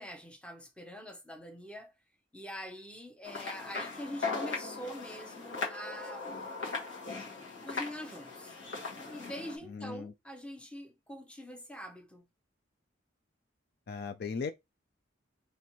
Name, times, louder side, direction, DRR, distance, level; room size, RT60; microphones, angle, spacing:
voice 1, 0.0-1.9 2.3-6.3 7.6-8.6 9.1-12.3, equal, 5° left, 0.7 m, -44 dB
sound 1, 3.2-9.6, left 4 dB, 75° left, 1.6 m, -39 dB
voice 2, 9.7-10.1 13.9-14.5, left 5 dB, 50° left, 0.4 m, -37 dB
4.2 x 3.1 x 3.0 m
head